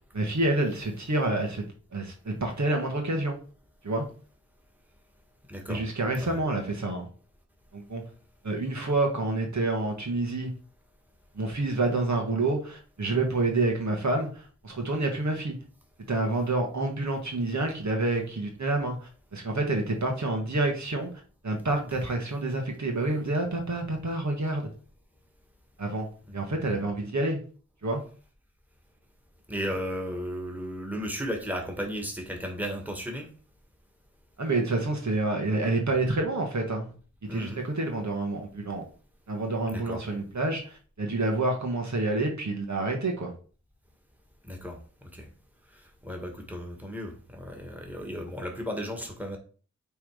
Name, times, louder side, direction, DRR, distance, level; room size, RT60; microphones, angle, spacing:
voice 1, 0.1-1.6 1.9-3.4 3.8-4.0 5.7-7.1 7.7-8.0 8.4-10.5 11.4-15.5 16.1-21.1 21.4-24.7 25.8-26.1 26.3-27.4 27.8-28.0 34.4-36.9 37.3-38.8 39.3-43.3, right 2 dB, 70° right, 1.7 m, -28 dB
voice 2, 5.5-5.9 6.2-6.4 26.3-26.5 29.5-33.3 37.3-37.6 39.7-40.0 44.5-44.8 45.1-45.3 45.7-49.4, equal, 5° right, 2.0 m, -35 dB
8.5 x 3.6 x 5.0 m
wide cardioid pair, 50°, 29 cm